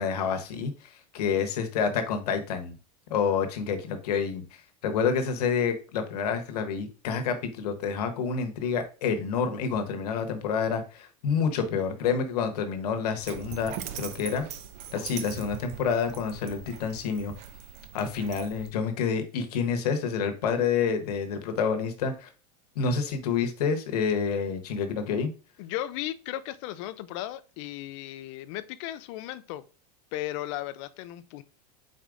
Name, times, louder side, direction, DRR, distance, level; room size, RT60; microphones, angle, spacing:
voice 1, 0.0-2.7 3.1-14.4 14.9-17.3 17.9-22.3 22.7-25.3, left 6 dB, 80° left, 1.0 m, -28 dB
Dog, 13.2-18.7, right 9 dB, 35° right, 0.4 m, -41 dB
voice 2, 25.6-29.6 30.1-31.4, left 14 dB, 50° left, 0.4 m, -36 dB
4.8 x 4.2 x 2.5 m
supercardioid pair, 150°, 20 cm